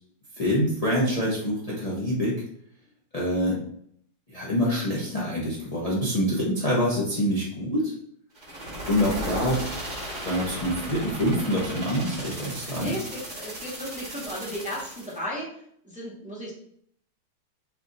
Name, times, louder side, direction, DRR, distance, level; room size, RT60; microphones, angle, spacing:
voice 1, 0.4-2.4 3.1-3.6 4.3-7.9 8.9-9.6 10.2-13.0, equal, 70° left, -6 dB, 0.3 m, -25 dB
sound 1, 8.3-15.2, right 1 dB, 30° right, 0.9 m, -36 dB
voice 2, 12.7-16.5, equal, 5° right, -5 dB, 0.6 m, -35 dB
4.2 x 2.5 x 4.1 m, 0.67 s
omnidirectional pair, 2.3 m